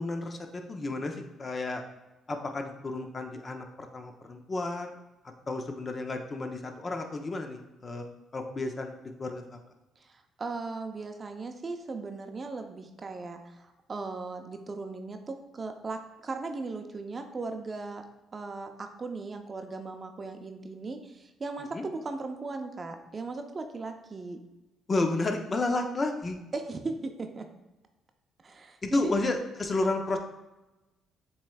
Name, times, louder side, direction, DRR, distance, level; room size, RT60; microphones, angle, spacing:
voice 1, 0.0-1.8 2.3-5.0 5.5-8.0 8.3-9.4 21.7-21.8 24.9-26.4 28.8-30.2, left 2 dB, 35° left, 4 dB, 0.7 m, -31 dB
voice 2, 10.0-18.0 18.3-24.4 26.5-27.5 28.4-29.2, right 3 dB, 40° right, 6 dB, 0.5 m, -37 dB
7.1 x 3.1 x 2.3 m, 1.0 s
supercardioid pair, 60°, 0 cm